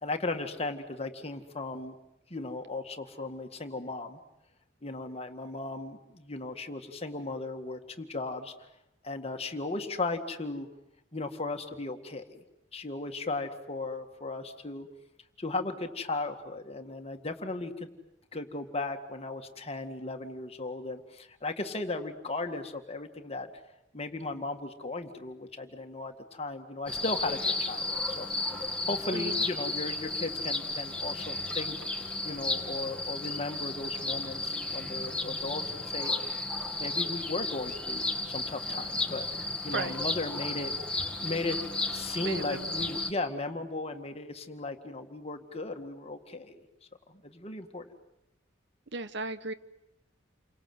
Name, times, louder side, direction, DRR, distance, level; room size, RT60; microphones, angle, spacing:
voice 1, 0.0-2.0 2.3-4.2 4.8-8.5 9.0-10.7 11.1-12.4 12.7-14.9 15.4-17.9 18.3-23.5 23.9-28.3 28.9-31.8 32.2-36.1 36.8-39.2 39.6-40.7 41.2-41.6 41.9-46.6 47.1-47.8, left 2 dB, 35° left, 6 dB, 1.9 m, -36 dB
sound 1, 26.9-43.1, left 2 dB, 5° left, 2.0 m, -33 dB
voice 2, 29.1-29.5 39.7-40.0 42.2-42.7 48.9-49.5, right 3 dB, 65° right, 12 dB, 1.1 m, -35 dB
29.5 x 24.5 x 7.9 m, 0.90 s
head